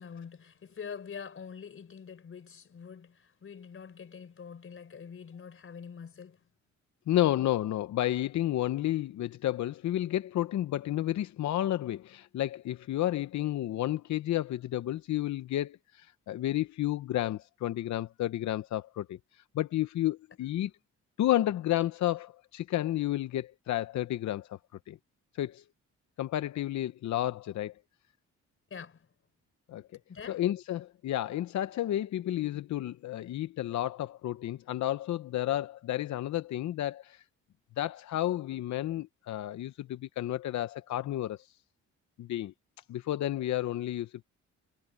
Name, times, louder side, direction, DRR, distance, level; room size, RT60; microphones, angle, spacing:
voice 1, 0.0-6.4 28.7-29.1 30.1-30.5, left 6 dB, 45° left, 4.1 m, -45 dB
voice 2, 7.1-20.7 21.2-24.6 24.9-25.0 25.3-25.6 26.2-27.8 29.7-29.8 30.3-37.2 37.8-41.5 42.2-42.5 42.9-44.3, left 13 dB, 65° left, 0.8 m, -31 dB
cardioid pair, 90°, 30 cm